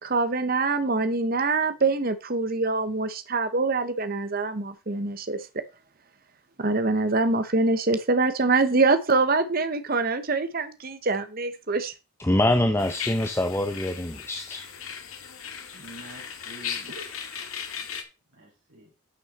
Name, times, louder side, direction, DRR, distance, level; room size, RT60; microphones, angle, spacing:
voice 1, 0.0-5.5 6.6-11.9, right 3 dB, 45° right, 0.9 m, -24 dB
voice 2, 12.2-14.6, left 1 dB, 10° left, 0.6 m, -24 dB
sound 1, 12.8-18.0, left 7 dB, 80° left, 1.9 m, -37 dB
voice 3, 15.7-17.2 18.3-18.9, right 1 dB, 90° right, 4.6 m, -46 dB
11.0 x 6.3 x 4.2 m
head